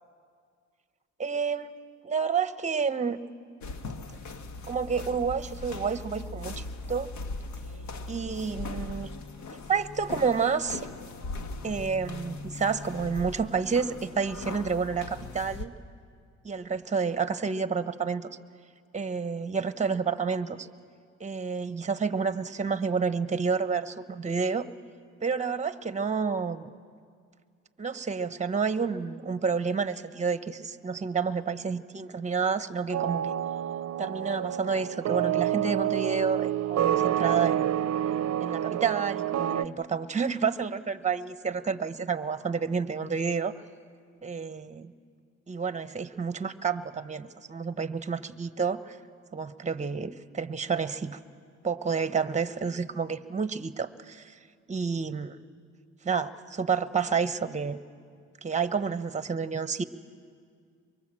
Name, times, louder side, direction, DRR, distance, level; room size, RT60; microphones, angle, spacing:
voice 1, 1.2-1.7 2.0-3.2 4.7-7.1 8.1-9.1 9.7-10.8 11.6-15.7 16.4-18.4 18.9-20.7 21.2-24.6 25.2-26.7 27.8-33.3 34.0-37.7 38.4-43.5 44.2-44.9 45.5-49.0 49.3-51.2 51.6-54.4 54.7-55.4 56.0-57.8 58.4-59.8, right 5 dB, 25° right, 12 dB, 1.0 m, -29 dB
sound 1, 3.6-15.7, left 3 dB, 75° left, 1.5 m, -39 dB
sound 2, 32.9-39.7, right 11 dB, 55° right, 0.6 m, -28 dB
24.0 x 24.0 x 7.6 m, 2.1 s
cardioid pair, 90°, 30 cm